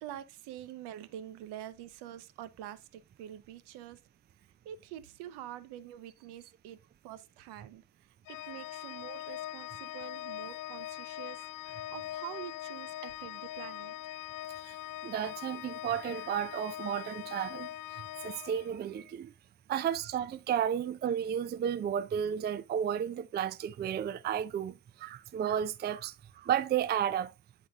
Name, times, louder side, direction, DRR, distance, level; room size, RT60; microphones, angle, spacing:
voice 1, 0.0-4.0 4.6-6.8 7.0-7.8 8.3-11.4 11.7-13.9, right 12 dB, 65° right, 0.8 m, -46 dB
Organ, 8.3-19.1, left 14 dB, 50° left, 0.6 m, -42 dB
voice 2, 15.0-19.3 19.7-27.3, right 9 dB, 25° right, 0.4 m, -33 dB
11.0 x 4.3 x 2.4 m
hypercardioid pair, 65°, 43 cm